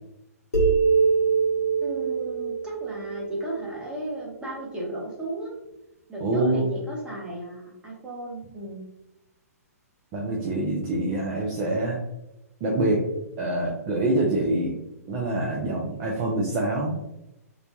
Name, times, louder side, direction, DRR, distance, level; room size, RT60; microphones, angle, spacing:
sound 1, 0.5-4.1, right 5 dB, 85° left, 1.0 m, -24 dB
voice 1, 1.8-5.5 6.1-8.8, right 1 dB, 10° right, -4 dB, 0.8 m, -34 dB
voice 2, 6.2-6.7 10.1-12.0 12.6-13.1 13.4-14.7 15.1-17.0, right 1 dB, 30° right, -2 dB, 0.5 m, -25 dB
3.0 x 2.1 x 2.6 m, 0.91 s
figure-of-eight pair, 125°, 9 cm